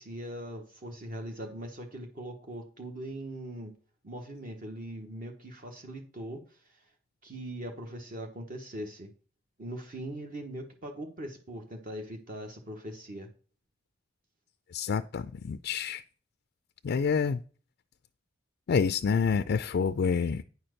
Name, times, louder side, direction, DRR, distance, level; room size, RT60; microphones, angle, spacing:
voice 1, 0.0-3.7 4.0-6.8 7.2-9.1 9.6-13.3, right 1 dB, 45° right, 1.2 m, -41 dB
voice 2, 14.7-16.0 16.8-17.4 18.7-20.4, left 6 dB, 55° left, 0.4 m, -27 dB
9.4 x 4.4 x 6.4 m
head